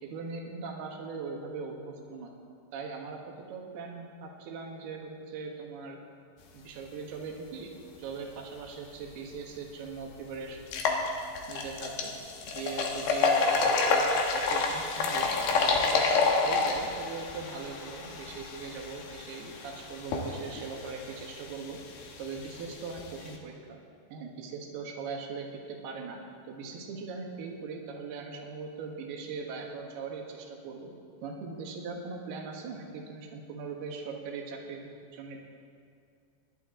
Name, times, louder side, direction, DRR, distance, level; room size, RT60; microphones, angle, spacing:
voice 1, 0.0-2.3 2.7-6.0 6.5-7.7 8.0-11.1 11.5-12.1 12.5-21.8 22.2-23.8 24.1-26.2 26.5-30.9 31.2-35.4, right 4 dB, 70° right, 0 dB, 3.4 m, -40 dB
sound 1, 9.3-9.4 9.9-10.0 10.6-23.4, left 4 dB, 75° left, 3.2 m, -29 dB
25.0 x 11.5 x 3.8 m, 2.3 s
omnidirectional pair, 4.8 m